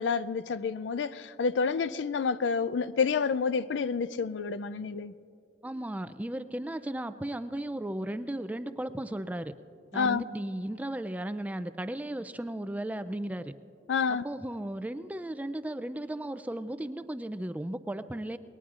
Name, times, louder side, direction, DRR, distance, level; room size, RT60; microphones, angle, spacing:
voice 1, 0.0-5.1 9.9-10.2 13.9-14.2, left 5 dB, 75° left, 0.4 m, -29 dB
voice 2, 5.6-9.5 9.9-13.5 14.1-18.4, right 1 dB, 10° right, 0.4 m, -35 dB
28.0 x 20.5 x 2.5 m
head